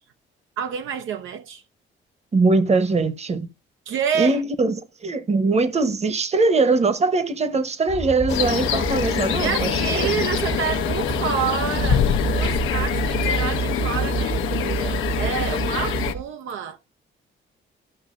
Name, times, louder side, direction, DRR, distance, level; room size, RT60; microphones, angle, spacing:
voice 1, 0.6-1.6 3.9-4.4 9.4-12.0 12.3-16.8, right 8 dB, 75° right, 0.7 m, -28 dB
voice 2, 2.3-3.5 4.1-10.2, right 3 dB, 35° right, 1.0 m, -21 dB
sound 1, 7.9-16.2, right 7 dB, 15° right, 0.5 m, -29 dB
sound 2, 8.3-16.1, left 9 dB, 80° left, 0.8 m, -25 dB
13.5 x 5.7 x 2.5 m
cardioid pair, 90°, 20 cm